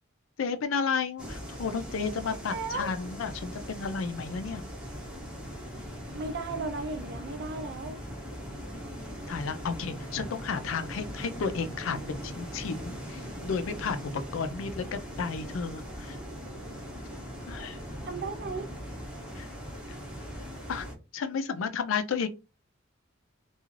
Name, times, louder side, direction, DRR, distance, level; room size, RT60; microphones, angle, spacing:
voice 1, 0.4-4.6 9.3-16.2 17.5-17.8 19.3-19.5 19.9-20.0 20.7-20.9 21.1-22.3, left 5 dB, 75° left, 0.4 m, -32 dB
sound 1, 1.2-20.9, equal, 5° right, 0.7 m, -40 dB
voice 2, 2.2-2.9 6.1-8.0 18.1-18.7, right 3 dB, 55° right, 0.5 m, -35 dB
2.4 x 2.3 x 3.1 m
head